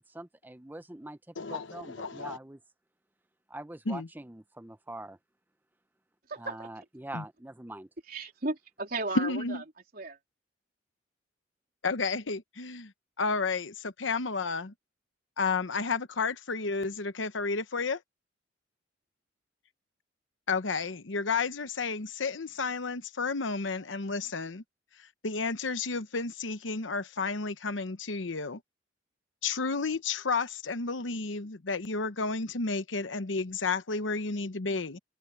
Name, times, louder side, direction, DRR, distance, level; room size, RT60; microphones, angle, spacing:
voice 1, 0.0-1.2 1.5-2.6 3.5-5.2 6.4-7.9, right 1 dB, 10° right, 0.6 m, -43 dB
voice 2, 1.4-2.4 3.9-4.1 7.1-7.2 9.2-9.6 11.8-12.9 13.2-14.7 15.4-18.0 20.5-24.6 25.0-28.6 29.4-35.0, left 4 dB, 80° left, 1.0 m, -31 dB
voice 3, 6.3-6.7 8.1-9.6 9.9-10.2, right 3 dB, 50° right, 3.5 m, -35 dB
head